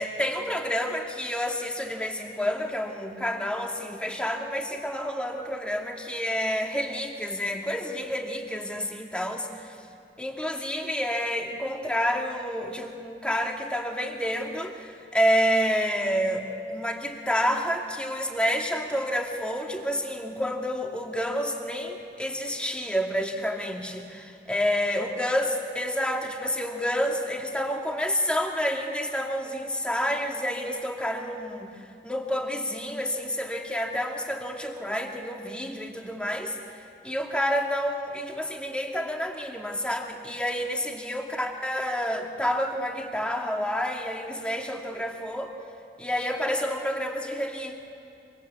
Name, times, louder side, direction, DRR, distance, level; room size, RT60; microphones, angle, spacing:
voice 1, 0.0-9.8 10.2-31.7 32.0-36.6 37.0-45.5 46.0-47.7, equal, 5° left, 1 dB, 2.4 m, -29 dB
25.5 x 24.5 x 8.3 m, 2.7 s
head